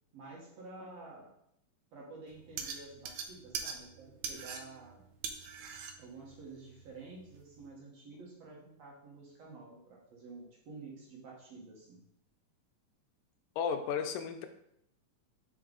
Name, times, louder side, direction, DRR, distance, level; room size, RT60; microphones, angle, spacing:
voice 1, 0.1-1.3 1.9-5.0 6.0-12.0, right 3 dB, 60° right, -3 dB, 2.1 m, -50 dB
sound 1, 2.3-7.7, right 6 dB, 75° right, 1.8 m, -43 dB
voice 2, 13.6-14.5, left 7 dB, 85° left, 7 dB, 2.3 m, -33 dB
5.5 x 4.6 x 3.7 m, 0.74 s
omnidirectional pair, 3.8 m